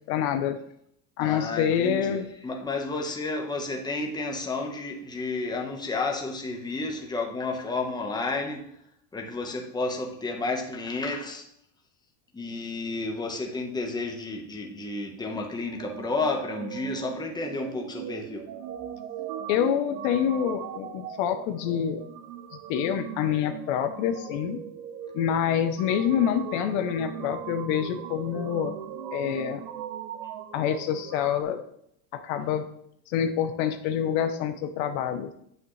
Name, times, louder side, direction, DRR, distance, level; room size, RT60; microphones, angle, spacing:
voice 1, 0.1-0.6 1.2-2.3 19.5-22.0 22.7-24.6 25.1-28.7 29.1-29.6 30.5-31.6 32.1-32.7 33.1-35.3, left 9 dB, 60° left, 8 dB, 0.9 m, -26 dB
voice 2, 1.2-8.7 9.1-11.4 12.3-18.4, left 3 dB, 10° left, 2 dB, 1.2 m, -31 dB
sound 1, 15.8-31.4, right 10 dB, 80° right, 0.8 m, -39 dB
9.0 x 7.3 x 3.2 m, 0.70 s
supercardioid pair, 130°, 47 cm